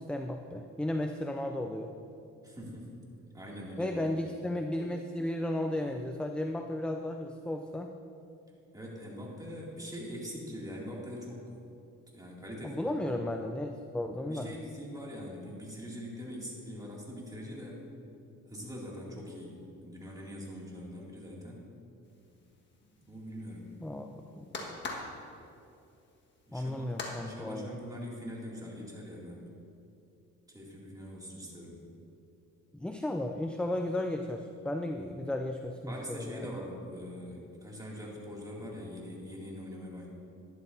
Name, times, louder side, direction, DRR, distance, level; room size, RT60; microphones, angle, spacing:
voice 1, 0.0-1.9 3.8-8.0 12.6-14.6 23.8-24.5 26.5-27.7 32.7-36.5, left 1 dB, 5° left, 5 dB, 0.3 m, -34 dB
voice 2, 2.4-2.9 3.3-4.0 8.7-11.6 12.1-13.3 14.3-17.8 18.5-21.6 23.1-23.7 26.5-26.9 27.2-29.5 30.5-31.8 35.9-40.1, equal, 10° right, -4 dB, 2.5 m, -43 dB
sound 1, 22.0-27.2, left 2 dB, 40° left, 1.6 m, -44 dB
12.0 x 11.0 x 2.7 m, 2.7 s
cardioid pair, 90°, 30 cm